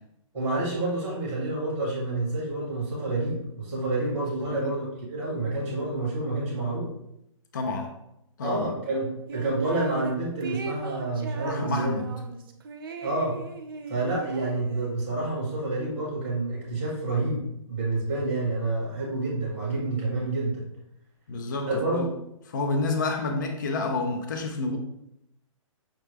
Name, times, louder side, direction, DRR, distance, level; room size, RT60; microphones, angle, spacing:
voice 1, 0.3-6.9 8.4-11.9 13.0-13.3 13.9-17.4 17.7-20.6 21.7-22.1, right 2 dB, 5° right, -6 dB, 0.9 m, -28 dB
voice 2, 4.3-4.7 7.5-7.9 8.4-8.7 11.4-12.1 21.3-22.1 22.5-24.8, left 3 dB, 35° left, 3 dB, 0.4 m, -29 dB
sound 1, 9.3-10.1 10.4-15.1, right 4 dB, 40° right, 0.5 m, -38 dB
5.7 x 2.2 x 3.2 m, 0.81 s
hypercardioid pair, 175°, 17 cm